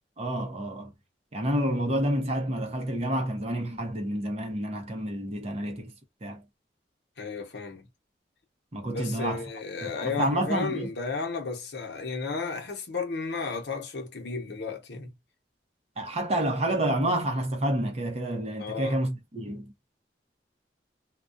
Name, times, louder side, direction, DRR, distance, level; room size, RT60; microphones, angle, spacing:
voice 1, 0.2-0.9 1.3-5.9 6.2-6.4 8.7-9.4 9.8-10.9 16.0-19.7, right 1 dB, 35° right, 0.7 m, -29 dB
voice 2, 7.2-7.9 8.9-15.1 18.6-19.0, left 4 dB, 70° left, 0.8 m, -33 dB
2.2 x 2.2 x 2.5 m
head